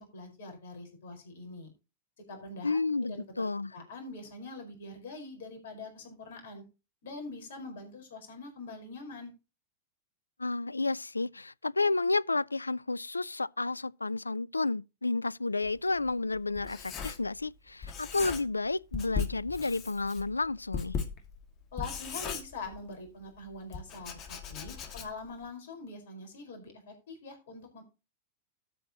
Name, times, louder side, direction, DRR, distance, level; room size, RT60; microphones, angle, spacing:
voice 1, 0.0-1.7 2.3-2.8 3.1-6.6 7.0-9.3 21.7-27.8, left 3 dB, 60° left, 4.8 m, -44 dB
voice 2, 2.6-3.7 10.4-21.0, left 3 dB, 80° left, 0.4 m, -31 dB
Writing, 15.7-17.6 17.8-18.7 18.9-23.1 23.7-25.4, left 6 dB, 35° left, 2.4 m, -38 dB
13.0 x 7.8 x 2.9 m
figure-of-eight pair, 90°, 0 cm